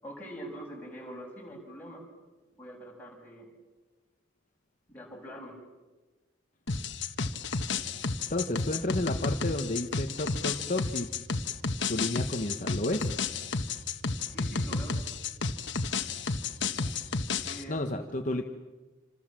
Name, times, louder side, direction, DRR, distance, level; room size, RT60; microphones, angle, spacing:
voice 1, 0.0-2.0 2.6-3.5 4.9-5.5 14.3-15.0 17.4-17.8, equal, 10° left, -2 dB, 6.9 m, -44 dB
sound 1, 6.7-17.6, left 4 dB, 60° left, 1.4 m, -32 dB
voice 2, 8.3-11.1 11.9-13.2 17.7-18.5, left 1 dB, 40° left, 5 dB, 1.2 m, -31 dB
28.0 x 26.5 x 7.6 m, 1.2 s
head